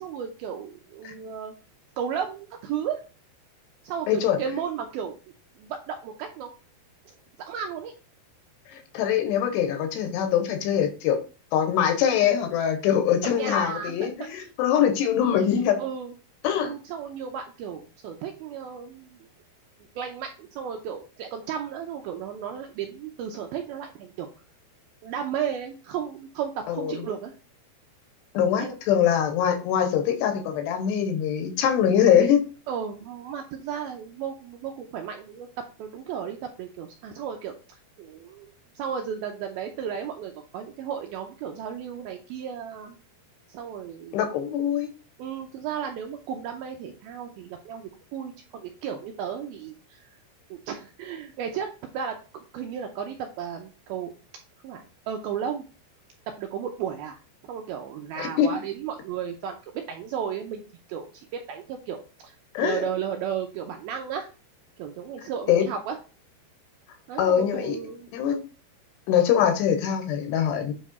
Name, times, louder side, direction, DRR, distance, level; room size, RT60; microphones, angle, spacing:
voice 1, 0.0-1.5 2.0-3.0 3.8-5.2 5.6-6.5 7.5-7.9 13.2-14.1 15.8-16.1 16.6-19.2 20.0-24.3 25.0-27.3 28.6-28.8 32.7-43.0 43.5-44.3 45.2-50.0 50.5-54.1 54.6-55.7 56.3-57.2 57.5-59.6 59.9-60.6 60.9-61.1 61.3-62.0 62.2-62.3 62.6-64.3 64.8-66.0 67.1-68.1, right 8 dB, 80° right, 3 dB, 2.2 m, -34 dB
voice 2, 4.1-4.4 8.9-11.2 11.5-15.8 16.4-16.7 26.7-26.9 28.3-32.4 44.1-44.9 58.2-58.5 62.5-62.9 65.5-65.7 67.2-67.8 68.1-68.4 69.1-70.7, left 9 dB, 80° left, 6 dB, 3.0 m, -23 dB
9.3 x 3.3 x 4.2 m, 0.34 s
omnidirectional pair, 5.0 m